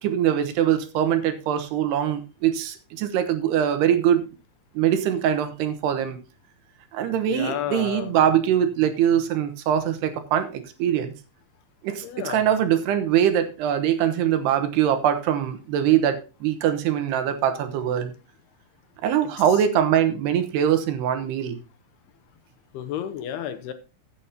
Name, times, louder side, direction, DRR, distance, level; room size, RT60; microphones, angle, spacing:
voice 1, 0.0-4.2 4.8-6.2 6.9-11.1 11.8-18.1 19.0-21.6, right 10 dB, 85° right, 8 dB, 3.1 m, -22 dB
voice 2, 7.3-8.1 12.0-12.4 22.7-23.7, left 10 dB, 80° left, 9 dB, 2.8 m, -31 dB
15.0 x 8.3 x 2.8 m, 0.31 s
omnidirectional pair, 4.8 m